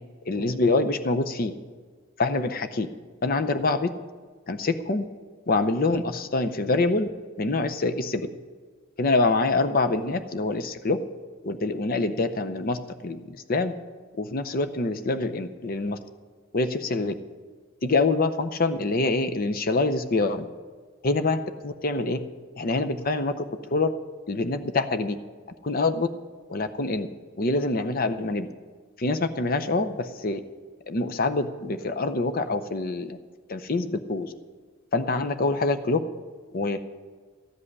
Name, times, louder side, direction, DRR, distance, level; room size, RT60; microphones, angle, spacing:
voice 1, 0.3-1.5 2.2-2.9 3.2-3.9 4.5-5.0 5.5-7.1 7.4-8.3 9.0-11.0 11.4-12.8 13.0-13.7 14.2-16.0 16.5-17.1 17.8-20.5 21.0-22.2 22.6-23.4 23.7-23.9 24.3-25.2 25.6-26.1 26.5-27.1 27.4-28.5 29.0-30.4 30.9-33.2 33.5-34.3 34.9-36.0 36.5-36.8, left 3 dB, 40° left, 8 dB, 0.6 m, -25 dB
14.0 x 5.5 x 9.7 m, 1.5 s
head